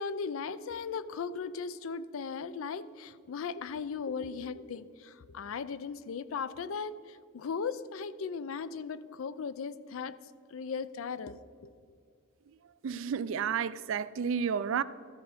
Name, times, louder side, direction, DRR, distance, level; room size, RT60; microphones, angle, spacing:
voice 1, 0.0-10.1 10.5-11.7, left 5 dB, 75° left, 0.4 m, -37 dB
voice 2, 12.8-14.8, right 7 dB, 65° right, 0.4 m, -31 dB
13.0 x 5.6 x 5.0 m
head